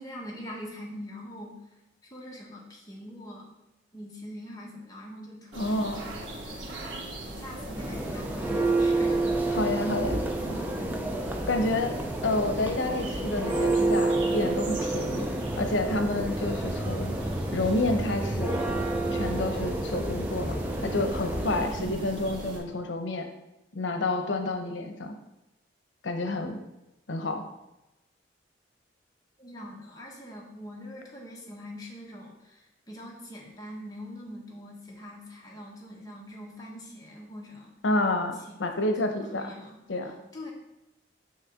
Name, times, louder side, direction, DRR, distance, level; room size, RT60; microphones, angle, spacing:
voice 1, 0.0-1.6 2.1-3.5 3.9-6.4 7.4-9.2 29.4-37.7 38.8-39.8 40.0-40.5, equal, 20° left, -3 dB, 1.4 m, -43 dB
voice 2, 5.5-6.0 9.5-10.2 11.5-11.9 12.2-15.3 15.6-17.2 17.5-18.6 19.1-20.5 20.8-23.3 23.7-25.1 26.0-26.6 27.1-27.4 37.8-39.5 39.9-40.1, left 2 dB, 85° left, 6 dB, 0.8 m, -29 dB
sound 1, 5.5-22.6, right 1 dB, 90° right, 1.6 m, -39 dB
Church bell, 7.6-21.8, right 2 dB, 10° right, 0.5 m, -29 dB
6.5 x 6.3 x 3.6 m, 0.95 s
head